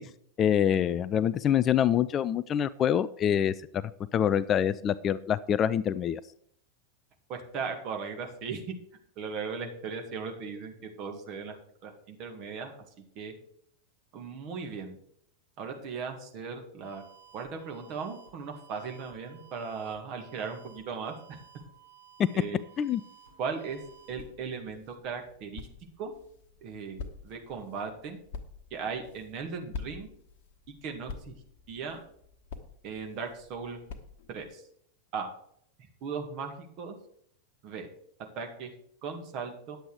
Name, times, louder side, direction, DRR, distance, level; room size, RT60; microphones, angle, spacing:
voice 1, 0.4-3.5 4.1-6.2 22.8-23.0, left 9 dB, 30° left, 16 dB, 0.3 m, -25 dB
voice 2, 7.3-8.7 9.2-11.6 11.8-12.7 13.2-13.3 14.1-15.0 15.6-17.0 17.3-21.1 22.3-22.6 23.4-23.8 24.1-25.7 26.0-26.1 26.6-28.2 28.7-30.1 30.7-31.3 31.7-32.0 32.8-33.8 34.3-34.6 35.1-35.3 36.0-37.0 37.6-37.9 38.3-38.7 39.0-39.8, right 5 dB, 40° right, 4 dB, 2.0 m, -37 dB
sound 1, 16.8-24.2, right 8 dB, 80° right, 4.2 m, -56 dB
sound 2, 23.7-34.5, left 4 dB, 50° left, 1.2 m, -47 dB
10.0 x 7.9 x 4.7 m, 0.66 s
figure-of-eight pair, 90°, 0 cm